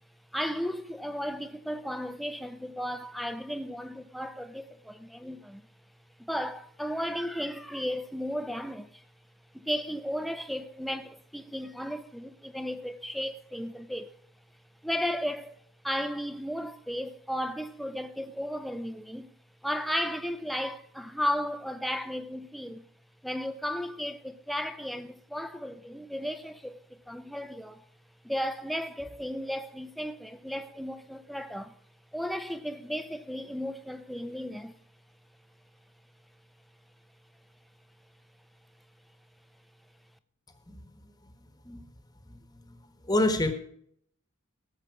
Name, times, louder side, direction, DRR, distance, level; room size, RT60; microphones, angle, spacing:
voice 1, 0.3-5.6 6.2-9.0 9.5-14.1 14.8-15.6 15.8-19.3 19.6-22.8 23.2-26.8 27.1-27.8 28.2-31.7 32.1-34.8, equal, ahead, 0.6 m, -34 dB
voice 2, 43.1-43.5, left 1 dB, 20° left, 1.3 m, -25 dB
17.5 x 7.4 x 4.6 m
head